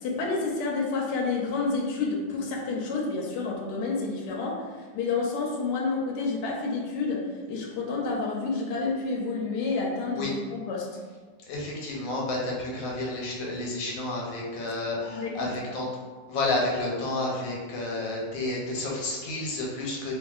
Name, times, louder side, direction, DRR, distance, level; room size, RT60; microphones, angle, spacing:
voice 1, 0.0-10.9 15.2-15.5, left 4 dB, 70° left, -2 dB, 1.1 m, -29 dB
voice 2, 11.5-15.8 16.3-20.2, left 2 dB, 85° left, -3 dB, 1.4 m, -30 dB
2.8 x 2.7 x 2.3 m, 1.4 s
omnidirectional pair, 2.0 m